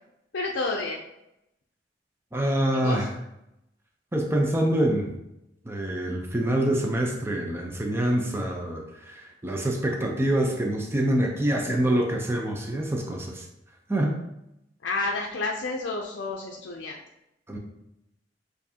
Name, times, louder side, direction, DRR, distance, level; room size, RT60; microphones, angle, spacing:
voice 1, 0.3-1.0 2.7-3.1 14.8-17.0, left 3 dB, 75° left, 0 dB, 0.5 m, -30 dB
voice 2, 2.3-3.2 4.1-5.1 5.6-13.5 13.9-14.1 17.5-17.6, right 1 dB, 15° right, 1 dB, 0.5 m, -26 dB
6.9 x 2.6 x 2.8 m, 0.84 s
head